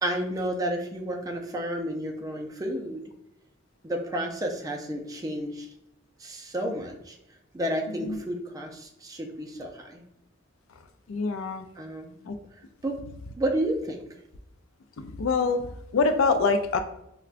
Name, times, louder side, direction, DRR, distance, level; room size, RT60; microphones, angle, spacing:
voice 1, 0.0-3.0 3.8-5.7 6.2-7.2 7.5-10.0 11.8-12.2 12.8-13.0 13.4-14.1, right 1 dB, 15° right, 2 dB, 0.4 m, -31 dB
voice 2, 11.1-11.7 12.3-12.4 15.2-15.7 15.9-16.8, left 4 dB, 85° left, 8 dB, 0.4 m, -24 dB
4.7 x 2.2 x 2.4 m, 0.81 s
head